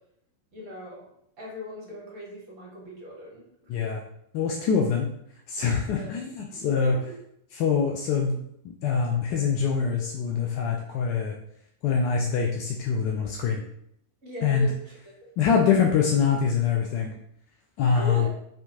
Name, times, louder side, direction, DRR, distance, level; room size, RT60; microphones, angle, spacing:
voice 1, 0.5-1.1 1.4-3.4 5.9-6.2 6.5-7.0 14.2-15.1 17.9-18.3, left 1 dB, 40° right, -3 dB, 1.2 m, -38 dB
voice 2, 3.7-4.0 4.3-5.1 5.5-7.0 7.6-8.4 8.6-11.3 11.8-13.6 14.4-14.7 15.4-17.1 17.8-18.3, left 6 dB, 45° left, 0 dB, 0.3 m, -24 dB
2.7 x 2.2 x 2.8 m, 0.73 s
figure-of-eight pair, 90°, 0 cm